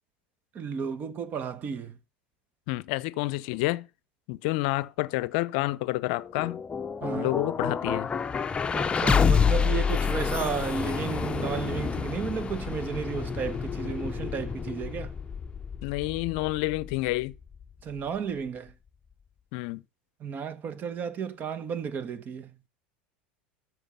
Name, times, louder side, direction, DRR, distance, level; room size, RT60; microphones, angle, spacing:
voice 1, 0.5-2.0 7.0-7.3 8.7-15.2 17.8-18.7 20.2-22.6, right 6 dB, 35° right, 1.3 m, -33 dB
voice 2, 2.7-3.9 4.3-6.6 7.1-8.1 15.8-17.3 19.5-19.8, left 20 dB, 60° left, 0.6 m, -29 dB
sound 1, 6.1-18.2, left 6 dB, 20° left, 0.7 m, -29 dB
13.0 x 6.2 x 5.7 m
hypercardioid pair, 80°, 5 cm